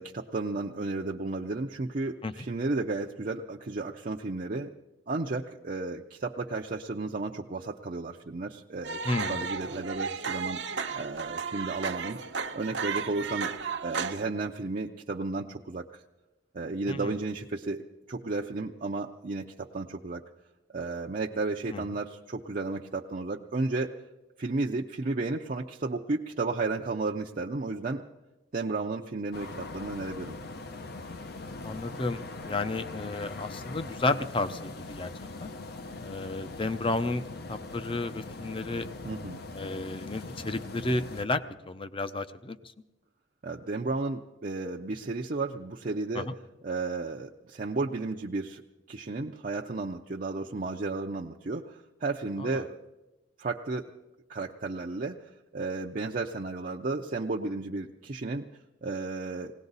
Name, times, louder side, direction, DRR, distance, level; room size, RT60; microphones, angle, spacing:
voice 1, 0.0-4.7 5.1-10.6 11.0-12.2 12.5-13.5 13.8-16.0 16.5-20.2 20.7-24.0 24.4-28.0 28.5-30.4 39.0-39.4 43.4-46.3 46.6-48.6 48.9-52.8 53.4-53.9 54.3-58.5 58.8-59.5, right 3 dB, 50° right, 0 dB, 0.6 m, -33 dB
sound 1, 8.8-14.2, right 5 dB, 70° right, 0.9 m, -34 dB
voice 2, 9.0-9.4 16.9-17.1 21.7-21.8 31.6-35.1 35.4-35.5 36.0-37.2 37.5-38.9 39.5-42.7 46.1-46.3 52.4-52.6, left 2 dB, 30° left, 11 dB, 0.6 m, -32 dB
sound 2, 29.3-41.2, left 3 dB, 60° left, 0.8 m, -41 dB
19.5 x 17.5 x 4.0 m, 1.0 s
head